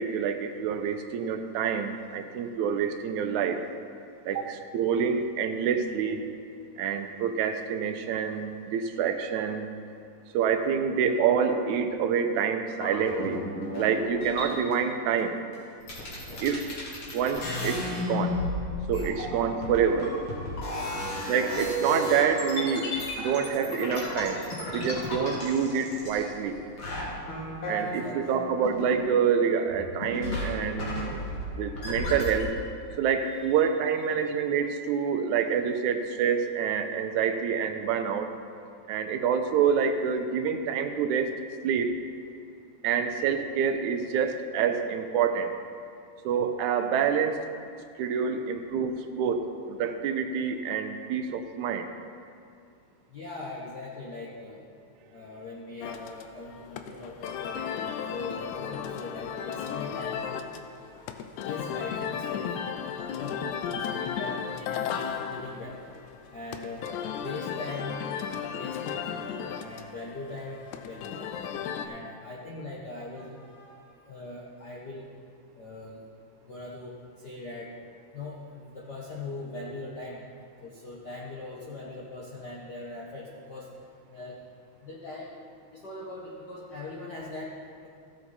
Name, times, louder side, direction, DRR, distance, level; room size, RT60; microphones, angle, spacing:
voice 1, 0.0-3.6 4.3-6.2 6.8-9.7 10.3-13.4 13.8-15.4 16.4-16.6 17.1-18.4 18.9-20.1 21.3-26.6 27.7-32.5 33.0-38.3 38.9-41.3 41.6-41.9 42.8-45.5 46.3-47.4 48.0-51.9, right 7 dB, 85° right, 7 dB, 2.1 m, -27 dB
sound 1, 12.7-14.7 15.5-15.6 15.8-26.5 26.8-29.4 29.7-32.4, left 1 dB, 50° left, 2.8 m, -33 dB
voice 2, 20.7-21.1 27.8-28.4 33.4-33.6 34.1-34.2 53.1-54.6 55.1-57.7 58.1-60.3 61.4-62.5 63.1-64.9 65.1-68.0 68.5-69.1 69.6-71.3 71.8-75.1 75.5-76.0 76.4-77.8 78.1-80.2 80.6-83.7 84.1-84.4 84.8-85.4 85.7-87.9, left 2 dB, 70° left, -4 dB, 1.0 m, -41 dB
sound 2, 55.8-71.9, left 7 dB, 85° left, 2.0 m, -35 dB
15.5 x 7.3 x 4.2 m, 2.4 s
omnidirectional pair, 3.3 m